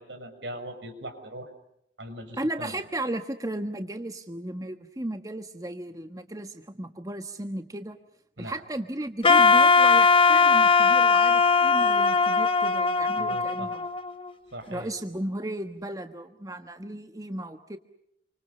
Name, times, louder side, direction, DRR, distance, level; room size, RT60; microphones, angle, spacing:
voice 1, 0.0-1.5 2.0-2.8 8.4-8.6 13.2-13.7 14.5-14.9, equal, 85° right, 6 dB, 6.0 m, -40 dB
voice 2, 2.4-8.0 8.4-13.9 14.7-17.8, right 1 dB, 20° right, 7 dB, 1.4 m, -35 dB
Wind instrument woodwind instrument, 9.2-14.3, left 4 dB, 30° left, 1.3 m, -19 dB
28.5 x 25.5 x 6.6 m, 0.75 s
head